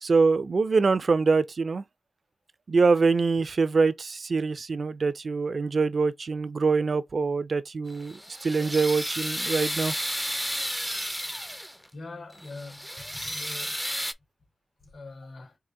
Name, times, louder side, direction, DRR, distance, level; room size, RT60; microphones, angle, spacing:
voice 1, 0.0-1.8 2.7-9.9, right 4 dB, 55° right, 0.5 m, -24 dB
sound 1, 7.9-11.9 12.4-14.1, equal, ahead, 0.4 m, -32 dB
voice 2, 11.9-14.0 14.8-15.6, left 3 dB, 85° left, 3.0 m, -43 dB
4.8 x 2.5 x 3.8 m
wide cardioid pair, 120°, 0 cm